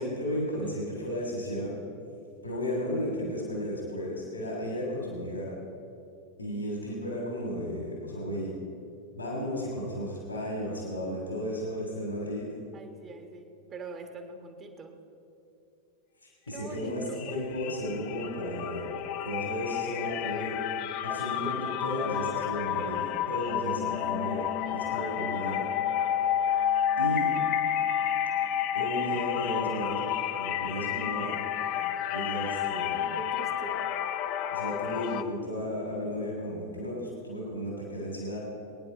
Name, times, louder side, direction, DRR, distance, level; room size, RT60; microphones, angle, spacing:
voice 1, 0.0-1.8 2.4-5.6 6.4-8.5 9.1-12.5 16.2-18.9 19.2-20.5 21.0-25.7 27.0-27.3 28.7-30.0 30.4-31.4 32.1-33.0 34.5-38.4, equal, 80° left, -2 dB, 2.9 m, -34 dB
voice 2, 12.7-15.0 16.5-17.4 32.4-33.8, right 4 dB, 25° right, 5 dB, 1.5 m, -44 dB
sound 1, 16.6-16.9 17.1-35.2, left 10 dB, 40° left, 0.6 m, -30 dB
21.5 x 9.8 x 4.5 m, 2.7 s
figure-of-eight pair, 90°, 0 cm